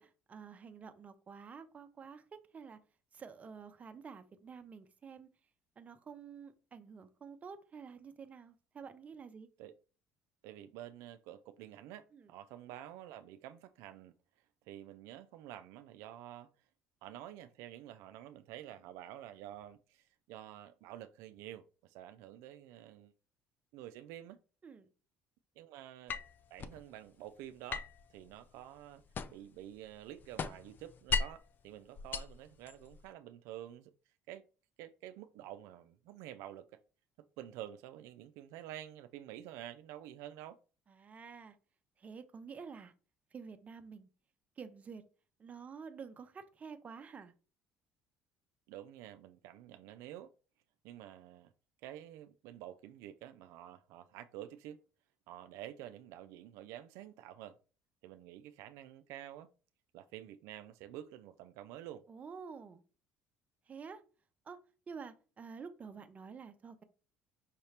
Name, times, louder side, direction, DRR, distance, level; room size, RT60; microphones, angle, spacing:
voice 1, 0.0-2.8 3.1-5.3 5.8-9.5 12.1-12.3 24.6-24.9 40.9-41.6 42.0-42.9 43.3-44.1 44.6-45.0 45.4-47.3 62.1-62.8 63.7-64.0 64.5-64.6 64.9-66.8, right 6 dB, 30° right, 0.6 m, -49 dB
voice 2, 10.4-14.1 14.7-16.5 17.0-23.1 23.7-24.4 25.6-26.2 26.5-27.8 28.1-29.0 29.3-33.9 34.3-34.4 34.8-36.8 37.4-40.6 48.7-50.3 50.8-51.5 51.8-54.8 55.3-57.6 58.0-59.5 59.9-62.0, right 12 dB, 80° right, 0.3 m, -49 dB
sound 1, 26.1-26.8 27.7-29.6 29.9-31.5 32.0-33.0, left 5 dB, 40° left, 0.4 m, -38 dB
5.6 x 2.8 x 3.3 m
cardioid pair, 115°, 5 cm